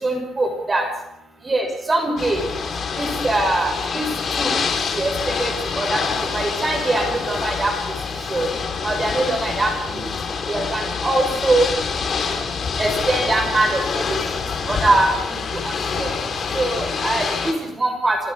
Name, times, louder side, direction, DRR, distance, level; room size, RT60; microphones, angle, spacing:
voice 1, 0.0-0.8 1.5-2.4 3.0-4.1 4.4-4.5 5.0-6.0 6.3-7.7 8.3-8.5 8.8-10.0 10.5-11.7 12.8-14.2 14.7-15.1 15.6-16.1 16.5-18.2, right 2 dB, 25° right, 4 dB, 6.0 m, -22 dB
Ocean / Boat Water vehicle, 2.2-17.5, left 5 dB, 50° left, 4.9 m, -26 dB
28.0 x 23.0 x 5.5 m, 0.84 s
cardioid pair, 90°, 0 cm